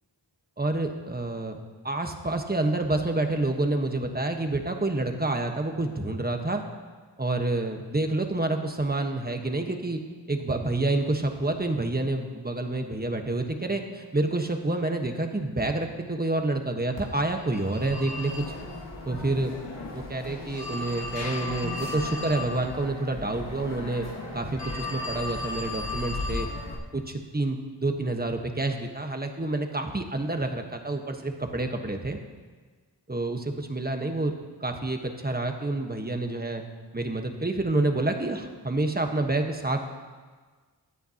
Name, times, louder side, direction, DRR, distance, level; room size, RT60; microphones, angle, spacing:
voice 1, 0.6-1.6 1.8-6.6 7.2-10.0 10.3-18.4 19.1-19.5 19.9-24.0 24.3-26.5 26.9-32.2 33.1-34.3 34.6-36.6 36.9-39.8, right 2 dB, 20° right, 4 dB, 1.3 m, -28 dB
Telephone, 17.0-26.7, left 2 dB, 90° left, 2.2 m, -35 dB
23.5 x 9.1 x 2.9 m, 1.4 s
wide cardioid pair, 65°, 42 cm